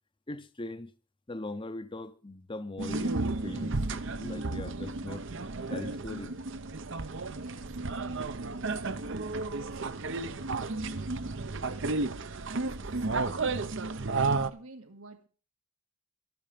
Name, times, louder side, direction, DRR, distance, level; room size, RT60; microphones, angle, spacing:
voice 1, 0.3-0.9 1.3-5.2 5.7-6.4, left 2 dB, 25° left, 0.7 m, -40 dB
sound 1, 2.8-14.5, right 3 dB, 60° right, 0.8 m, -33 dB
voice 2, 7.4-15.3, right 3 dB, 80° right, 1.9 m, -51 dB
12.5 x 12.0 x 5.2 m
head